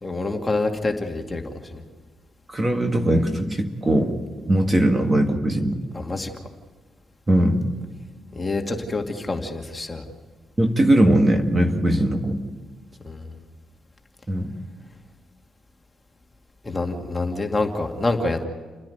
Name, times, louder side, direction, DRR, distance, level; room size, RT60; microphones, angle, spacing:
voice 1, 0.0-1.4 1.7-1.8 5.9-6.3 8.3-10.0 13.0-13.3 16.6-18.5, left 2 dB, 20° left, 3 dB, 2.3 m, -26 dB
voice 2, 2.5-4.1 4.5-5.8 7.3-7.6 10.6-12.4 14.3-14.5, right 1 dB, 25° right, 4 dB, 1.9 m, -20 dB
29.5 x 10.5 x 9.2 m, 1.4 s
cardioid pair, 90°, 0 cm